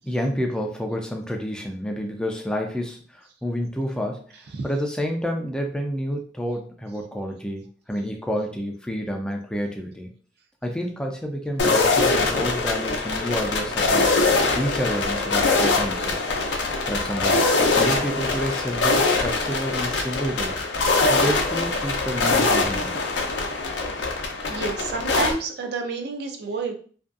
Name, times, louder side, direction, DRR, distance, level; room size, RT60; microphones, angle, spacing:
voice 1, 0.0-10.1 10.6-14.1 14.5-16.2 16.9-17.4 17.8-20.6 21.1-23.0, equal, 5° left, 2 dB, 0.3 m, -29 dB
sound 1, 11.6-25.3, left 3 dB, 75° left, 0.5 m, -23 dB
voice 2, 24.5-26.7, right 4 dB, 65° right, 2 dB, 0.4 m, -29 dB
2.6 x 2.2 x 2.4 m, 0.43 s
head